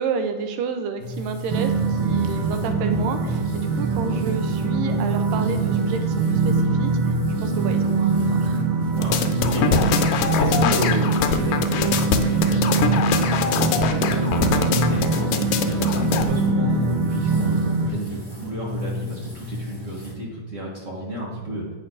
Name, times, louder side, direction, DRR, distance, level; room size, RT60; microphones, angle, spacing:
voice 1, 0.0-7.1 7.4-8.7, right 6 dB, 90° right, 7 dB, 2.5 m, -30 dB
sound 1, 1.0-20.1, left 2 dB, 10° right, 1.3 m, -34 dB
sound 2, 1.5-17.9, right 4 dB, 65° right, 1.4 m, -23 dB
voice 2, 8.9-21.7, right 1 dB, 30° right, -4 dB, 1.6 m, -31 dB
sound 3, 9.0-16.3, left 7 dB, 85° left, 2.3 m, -23 dB
9.0 x 6.6 x 4.1 m, 1.3 s
omnidirectional pair, 3.8 m